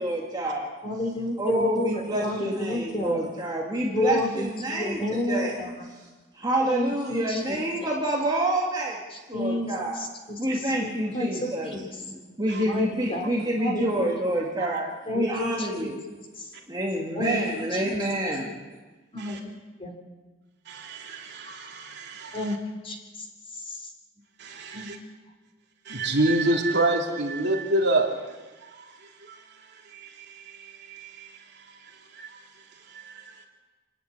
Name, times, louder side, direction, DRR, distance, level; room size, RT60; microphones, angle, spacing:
voice 1, 0.0-0.7 1.4-5.6 6.3-9.0 9.3-10.0 10.4-11.8 12.1-16.0 16.7-18.6, right 1 dB, 20° right, -2 dB, 2.2 m, -28 dB
voice 2, 0.8-3.2 3.9-5.7 6.7-7.6 9.1-10.1 10.5-11.9 12.6-13.3 13.6-14.1 15.1-15.9 16.4-16.5 17.1-17.4 17.7-17.8 19.1-19.4 19.8-19.9 22.3-22.6 22.8-23.3 23.5-23.9 24.7-24.9, left 1 dB, 30° left, 3 dB, 3.6 m, -30 dB
voice 3, 20.7-22.5 24.4-25.0 25.8-28.1 28.6-28.8 29.2-29.4 29.9-30.1 30.4-31.3 32.1-32.3 32.9-33.3, right 2 dB, 55° right, 1 dB, 3.1 m, -27 dB
27.5 x 10.5 x 9.5 m, 1.2 s
head